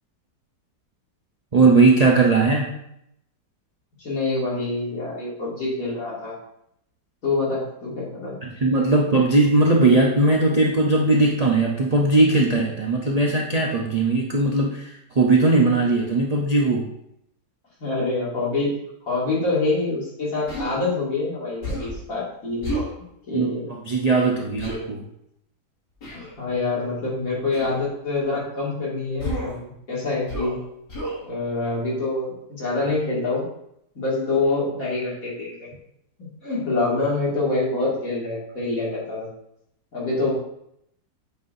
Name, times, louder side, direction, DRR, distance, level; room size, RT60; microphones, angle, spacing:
voice 1, 1.5-2.7 8.4-14.9 15.2-16.9 23.3-23.6 23.9-25.0, right 3 dB, 50° right, -1 dB, 0.4 m, -19 dB
voice 2, 4.0-6.3 7.2-8.4 17.8-18.7 19.1-23.7 26.1-30.6 31.2-33.4 33.9-35.7 36.4-39.3 39.9-40.3, left 3 dB, 50° left, -6 dB, 2.7 m, -26 dB
Human voice, 20.5-20.7 21.6-22.0 22.6-22.9 24.6-24.8 26.0-26.3 27.5-27.8 29.2-29.6 30.3-30.6 30.9-31.2, equal, 75° left, 3.3 m, -30 dB
8.3 x 5.6 x 2.7 m, 0.76 s
omnidirectional pair, 1.9 m